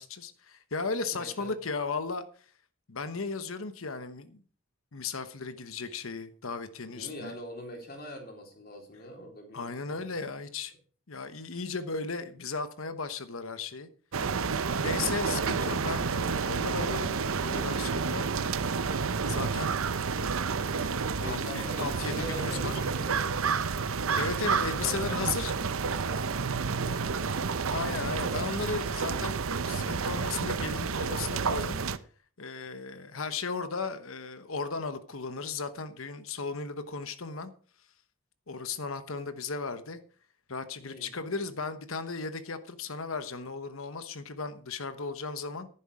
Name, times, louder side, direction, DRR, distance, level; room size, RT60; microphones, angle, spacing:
voice 1, 0.0-2.5 2.9-4.4 4.9-7.3 9.5-10.7 11.1-13.9 14.2-14.5 14.8-18.3 19.3-20.4 20.8-21.0 21.2-22.8 24.2-25.5 27.7-31.8 32.4-37.5 38.5-40.0 40.5-45.7, left 4 dB, 70° left, 1.1 m, -36 dB
voice 2, 1.1-1.5 6.8-10.1 21.2-23.2 24.4-27.4 27.8-28.4 40.8-41.4, equal, 45° left, 3.6 m, -44 dB
sound 1, 14.1-32.0, right 5 dB, 75° right, 0.7 m, -30 dB
11.5 x 10.0 x 4.9 m
head